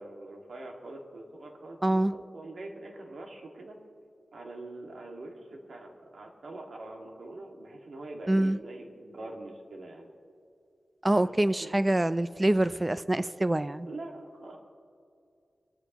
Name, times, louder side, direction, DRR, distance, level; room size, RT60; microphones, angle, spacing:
voice 1, 0.0-3.8 4.3-10.1 11.2-11.3 11.6-11.7 13.8-14.6, right 2 dB, 75° right, 1 dB, 2.1 m, -44 dB
voice 2, 1.8-2.1 8.3-8.6 11.0-13.9, right 1 dB, 20° right, 14 dB, 0.5 m, -25 dB
24.0 x 14.0 x 3.0 m, 2.4 s
wide cardioid pair, 85°, 0 cm